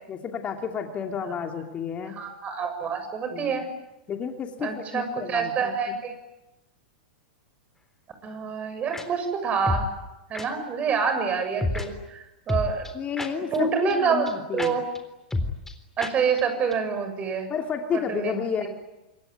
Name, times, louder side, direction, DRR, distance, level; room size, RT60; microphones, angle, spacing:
voice 1, 0.1-2.1 3.3-3.6 4.1-5.7 12.9-14.8 17.5-18.7, left 7 dB, 30° left, 4 dB, 2.8 m, -31 dB
voice 2, 2.1-3.7 4.6-6.1 8.2-9.9 10.3-12.9 13.5-14.3 14.5-14.8 16.0-17.5 18.1-18.4, right 5 dB, 30° right, 7 dB, 7.4 m, -27 dB
sound 1, 8.9-9.0 9.7-9.9 10.3-10.5 11.6-11.9 12.5-13.6 13.9-14.0 14.3-14.4 14.6-14.7 14.9-15.0 15.3-15.7 16.0-16.1 16.4-16.5 16.7-16.8, left 2 dB, 5° left, 3.8 m, -28 dB
27.0 x 22.5 x 9.5 m, 0.98 s
hypercardioid pair, 110°, 5 cm